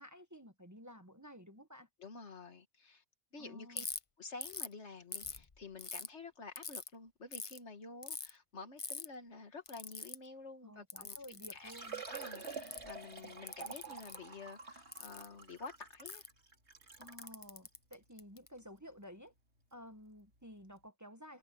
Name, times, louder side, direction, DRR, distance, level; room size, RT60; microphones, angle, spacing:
voice 1, 0.0-1.9 3.4-3.9 10.6-12.0 17.0-19.3 19.7-21.4, equal, 15° right, 1.3 m, -53 dB
voice 2, 2.0-3.0 3.3-3.8 4.2-11.2 11.5-11.7 12.1-16.3, left 4 dB, 75° left, 2.1 m, -50 dB
Ratchet pawl, 3.8-4.0 4.4-4.7 5.1-6.1 6.6-6.9 7.3-7.6 8.0-8.3 8.8-9.1 9.7-10.2 10.9-11.6 12.2-12.9 13.5-14.2 14.9-15.3 16.1-16.3 17.0-18.5, left 4 dB, 30° left, 0.8 m, -43 dB
Liquid, 11.0-11.1 11.4-17.3 18.0-18.1 18.6-18.7 20.3-20.4 20.6-20.7, right 4 dB, 70° right, 3.3 m, -48 dB
omnidirectional pair, 1.2 m